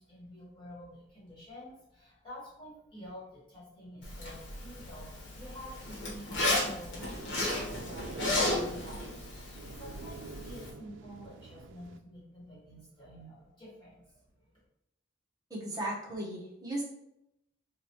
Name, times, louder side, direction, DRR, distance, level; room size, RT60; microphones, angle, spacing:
voice 1, 0.0-14.5, equal, 25° left, -7 dB, 1.4 m, -49 dB
Zipper (clothing), 4.0-10.7, left 2 dB, 70° left, 1.1 m, -34 dB
sound 1, 7.0-12.0, right 4 dB, 75° right, 0.3 m, -47 dB
voice 2, 15.5-16.8, right 1 dB, 20° right, -3 dB, 0.8 m, -36 dB
4.8 x 2.2 x 3.0 m, 0.82 s
head